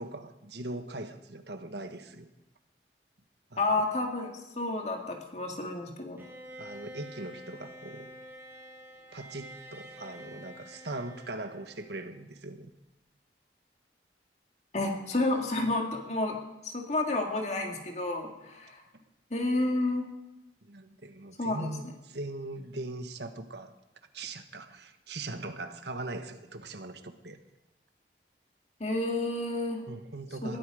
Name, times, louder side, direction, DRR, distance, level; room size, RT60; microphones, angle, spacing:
voice 1, 0.0-2.3 3.5-3.8 6.6-8.1 9.1-12.7 20.6-23.7 24.1-27.4 29.9-30.6, right 2 dB, 65° right, 8 dB, 1.4 m, -40 dB
voice 2, 3.6-4.3 4.6-6.2 14.7-16.4 16.6-18.8 19.3-20.1 21.4-21.7 28.8-29.9 30.4-30.6, left 2 dB, 35° left, 2 dB, 2.0 m, -30 dB
Bowed string instrument, 6.2-12.2, equal, 15° right, 2.3 m, -48 dB
21.0 x 14.0 x 5.0 m, 0.94 s
head